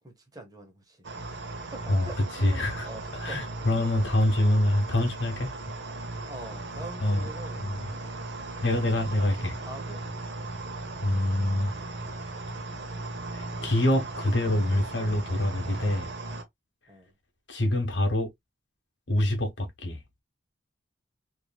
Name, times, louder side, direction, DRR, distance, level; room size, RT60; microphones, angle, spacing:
voice 1, 0.0-3.4 3.8-4.1 5.9-6.0 6.2-7.7 9.6-10.0 12.5-12.7 16.9-17.1, right 2 dB, 20° right, 0.8 m, -45 dB
sound 1, 1.0-16.4, right 2 dB, 70° right, 0.8 m, -37 dB
voice 2, 2.4-2.9 3.2-5.5 7.0-7.3 7.6-7.8 8.6-9.6 11.0-11.7 13.3-16.1 17.5-18.3 19.1-20.0, left 1 dB, 70° left, 1.2 m, -25 dB
3.1 x 2.7 x 2.2 m
head